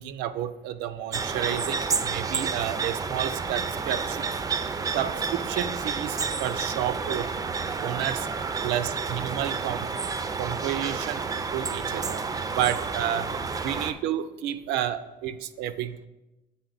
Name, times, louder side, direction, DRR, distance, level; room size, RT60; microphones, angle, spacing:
voice 1, 0.0-4.3 4.9-7.3 7.8-8.3 8.6-9.9 10.4-12.2 12.5-13.3 13.6-16.0, right 11 dB, 90° right, 12 dB, 0.4 m, -31 dB
sound 1, 1.1-13.9, right 5 dB, 20° right, 0.3 m, -30 dB
7.7 x 4.1 x 3.9 m, 1.0 s
cardioid pair, 110°, 17 cm